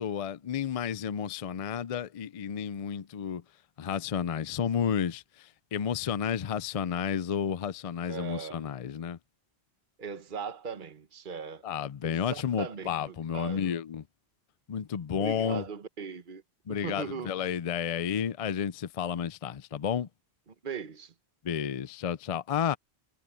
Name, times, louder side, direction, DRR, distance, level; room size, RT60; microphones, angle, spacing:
voice 1, 0.0-3.4 3.8-9.2 11.6-14.0 14.7-15.6 16.7-20.1 21.4-22.8, left 8 dB, 45° left, 0.5 m, -31 dB
voice 2, 8.1-8.6 10.0-11.6 12.0-12.9 13.3-13.7 15.2-16.4 16.7-17.3 20.6-21.1, right 5 dB, 50° right, 1.4 m, -38 dB
omnidirectional pair, 1.1 m